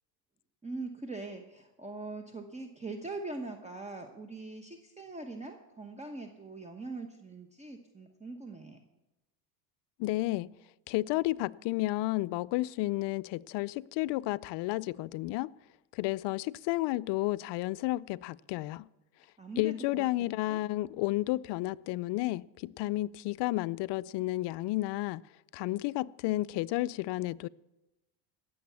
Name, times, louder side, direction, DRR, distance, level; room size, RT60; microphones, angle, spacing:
voice 1, 0.6-8.8 19.4-20.1 20.5-20.6, right 3 dB, 15° right, 1.1 m, -42 dB
voice 2, 10.0-10.5 10.9-15.5 15.9-18.9 19.6-25.2 25.5-27.5, left 18 dB, 60° left, 0.5 m, -32 dB
18.0 x 7.1 x 6.9 m
supercardioid pair, 100°, 49 cm